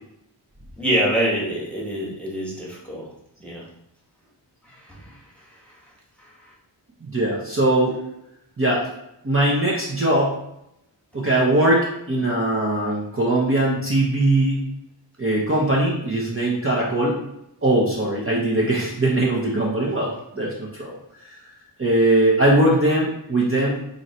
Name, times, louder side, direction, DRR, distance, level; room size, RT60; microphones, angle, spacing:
voice 1, 0.8-3.0 3.4-3.6 4.6-5.2 5.6-5.8 6.2-6.5, right 1 dB, 5° left, -5 dB, 1.2 m, -26 dB
voice 2, 7.0-8.0 8.6-8.9 9.2-10.4 11.1-14.7 15.2-17.2 17.6-21.4 21.8-23.8, right 1 dB, 30° right, -5 dB, 0.7 m, -21 dB
3.0 x 2.6 x 4.2 m, 0.81 s
wide cardioid pair, 65°, 44 cm